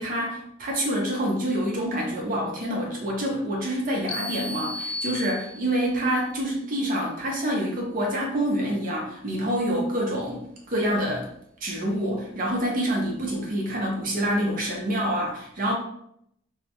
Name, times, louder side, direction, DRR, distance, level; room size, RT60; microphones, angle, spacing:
voice 1, 0.0-11.3 11.6-15.7, equal, 45° right, -2 dB, 0.6 m, -27 dB
sound 1, 4.1-5.9, left 2 dB, 60° left, 0.3 m, -34 dB
2.2 x 2.0 x 2.8 m, 0.73 s
head